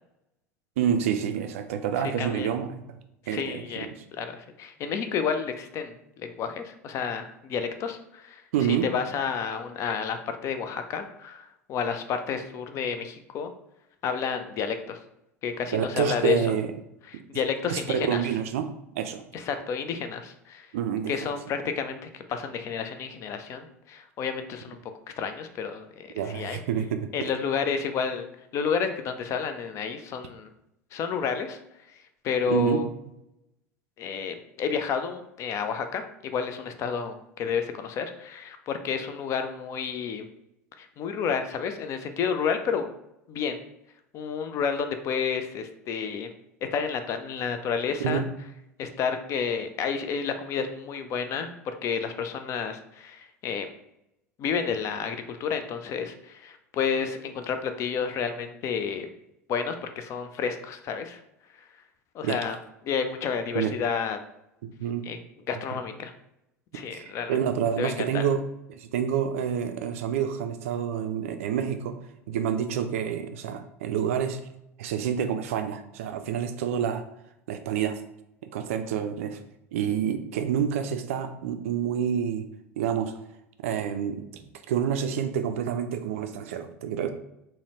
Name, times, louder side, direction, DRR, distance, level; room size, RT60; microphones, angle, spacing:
voice 1, 0.8-3.0 3.3-4.0 8.5-8.9 15.7-16.7 17.7-18.7 19.0-19.2 20.7-21.1 26.1-27.3 32.5-32.8 48.0-48.3 62.2-62.4 63.5-63.8 64.6-65.1 66.7-68.4 68.7-72.0 72.3-74.4 74.8-77.0 77.5-78.0 78.5-79.4 79.7-82.5 82.8-83.1 83.6-87.1, right 8 dB, 60° right, 8 dB, 0.3 m, -28 dB
voice 2, 2.2-2.5 3.3-8.4 8.7-13.5 14.0-15.0 15.4-16.6 17.1-18.3 19.3-20.7 21.1-24.8 25.2-26.6 27.1-28.3 28.5-30.5 30.9-31.6 32.2-32.9 34.0-40.3 40.8-42.9 43.3-43.6 44.1-46.3 46.7-48.2 48.8-53.7 54.4-59.1 59.5-61.2 62.1-62.6 62.8-64.2 65.1-65.2 65.5-66.1 66.7-67.4 67.8-68.2, left 6 dB, 35° left, 8 dB, 0.4 m, -30 dB
3.8 x 2.1 x 2.9 m, 0.83 s
figure-of-eight pair, 75°, 8 cm